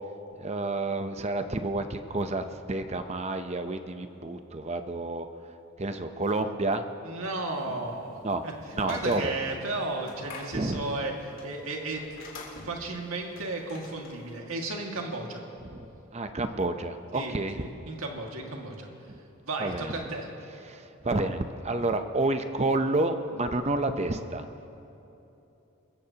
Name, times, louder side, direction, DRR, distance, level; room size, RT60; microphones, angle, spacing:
voice 1, 0.4-5.3 5.8-6.9 8.2-8.4 8.8-9.3 10.5-10.8 15.6-15.9 16.1-17.7 19.6-20.0 20.6-24.5, right 2 dB, 30° right, 8 dB, 0.7 m, -29 dB
voice 2, 7.0-8.2 8.4-8.5 8.9-11.1 11.4-12.2 12.6-15.4 17.1-18.9 19.5-20.3, right 2 dB, 75° right, 0 dB, 2.0 m, -34 dB
sound 1, 7.5-14.4, left 3 dB, 60° left, 3.3 m, -47 dB
26.5 x 15.0 x 2.9 m, 3.0 s
head